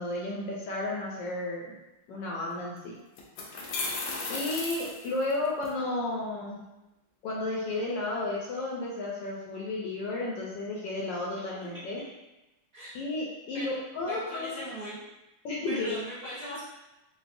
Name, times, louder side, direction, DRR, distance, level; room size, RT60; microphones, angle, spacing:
voice 1, 0.0-1.7 2.1-2.9 4.3-6.6 7.2-12.0 12.9-14.7 15.4-16.1, left 2 dB, 75° left, -4 dB, 1.2 m, -33 dB
sound 1, 2.5-2.6 3.2-5.7, left 3 dB, 90° left, 0.8 m, -35 dB
voice 2, 14.1-15.0 15.7-16.6, equal, 40° right, -12 dB, 0.9 m, -39 dB
4.6 x 2.0 x 2.5 m, 0.98 s
omnidirectional pair, 2.3 m